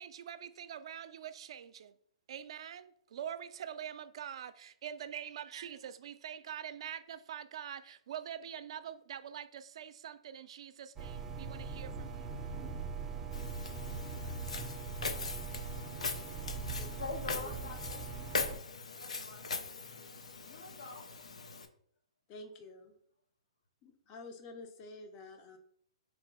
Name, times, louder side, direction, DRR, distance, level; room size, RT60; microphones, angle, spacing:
voice 1, 0.0-1.9 2.3-12.4, right 9 dB, 60° right, 0.4 m, -45 dB
sound 1, 11.0-18.6, right 4 dB, 10° right, 0.5 m, -41 dB
Walk footsteps, 13.3-21.7, left 4 dB, 85° left, 0.6 m, -41 dB
voice 2, 16.3-18.0 19.0-19.5 20.4-21.0, left 4 dB, 65° left, 1.1 m, -45 dB
voice 3, 22.3-22.9 23.8-25.6, left 2 dB, 30° left, 0.7 m, -49 dB
3.6 x 2.9 x 4.8 m
hypercardioid pair, 145°, 3 cm